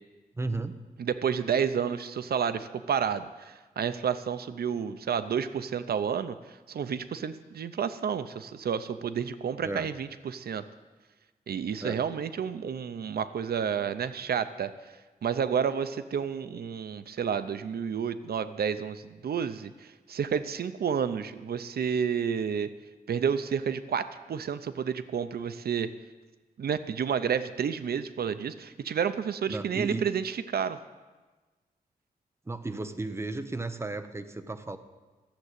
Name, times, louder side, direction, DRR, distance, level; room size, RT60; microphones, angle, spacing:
voice 1, 0.3-0.7 9.6-9.9 11.8-12.0 29.5-30.1 32.5-34.8, right 2 dB, 15° right, 8 dB, 0.7 m, -34 dB
voice 2, 1.0-6.4 6.7-10.6 11.5-14.7 15.2-22.7 23.1-25.9 26.6-30.8, right 7 dB, 90° right, 12 dB, 0.6 m, -30 dB
13.5 x 7.5 x 8.1 m, 1.3 s
wide cardioid pair, 170°, 16 cm